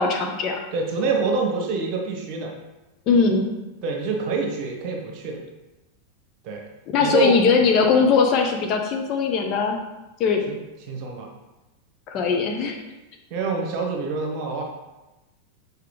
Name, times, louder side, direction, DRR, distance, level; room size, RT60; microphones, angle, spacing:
voice 1, 0.0-0.7 3.1-3.5 6.9-9.8 10.2-10.5 12.1-12.8, left 5 dB, 35° left, 2 dB, 0.9 m, -20 dB
voice 2, 0.7-2.5 3.8-5.4 6.4-6.6 7.0-7.3 10.5-10.6 10.9-11.3 13.3-14.6, right 4 dB, 40° right, 1 dB, 1.5 m, -26 dB
6.8 x 5.1 x 3.3 m, 1.0 s
figure-of-eight pair, 90°, 0 cm